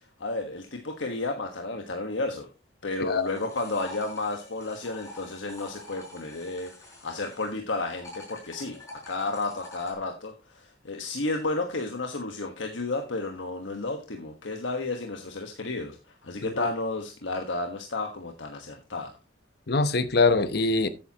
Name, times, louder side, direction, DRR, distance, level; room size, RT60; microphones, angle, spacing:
voice 1, 0.0-2.5 2.8-16.0 16.2-19.1, left 2 dB, 90° left, 1.4 m, -32 dB
sound 1, 3.0-7.6 7.9-9.9, left 1 dB, 15° left, 4.3 m, -46 dB
voice 2, 19.7-20.9, left 3 dB, 60° left, 0.9 m, -23 dB
13.5 x 9.1 x 2.9 m
head